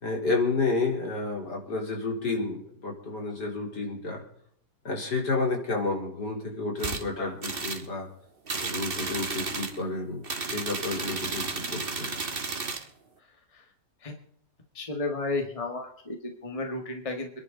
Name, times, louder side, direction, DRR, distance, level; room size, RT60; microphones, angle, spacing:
voice 1, 0.0-4.2 4.8-8.1 8.6-10.2 10.5-12.1, left 3 dB, 65° left, 0 dB, 4.3 m, -30 dB
sound 1, 6.8-7.0 7.4-7.9 8.5-9.8 10.2-12.9, right 4 dB, 35° right, 1.6 m, -33 dB
voice 2, 14.7-17.3, left 2 dB, 20° left, 3 dB, 1.8 m, -33 dB
27.5 x 11.0 x 3.9 m, 0.65 s
omnidirectional pair, 1.9 m